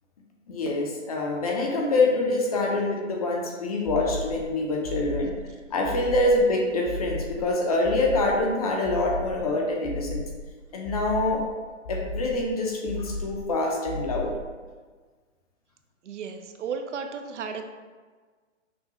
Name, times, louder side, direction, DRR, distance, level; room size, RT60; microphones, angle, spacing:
voice 1, 0.5-5.3 5.7-10.3 10.7-11.4 11.9-14.3, left 2 dB, 30° left, -1 dB, 0.5 m, -25 dB
sound 1, 3.9-4.5 4.8-5.5 5.8-6.5 6.8-7.5 7.8-8.5 8.8-9.5 9.8-10.5 10.8-11.5 11.8-12.5 12.8-13.5 13.8-14.5, left 2 dB, 75° left, 0.7 m, -35 dB
voice 2, 16.0-17.6, right 6 dB, 70° right, 6 dB, 0.5 m, -34 dB
6.0 x 2.3 x 2.9 m, 1.4 s
hypercardioid pair, 155°, 38 cm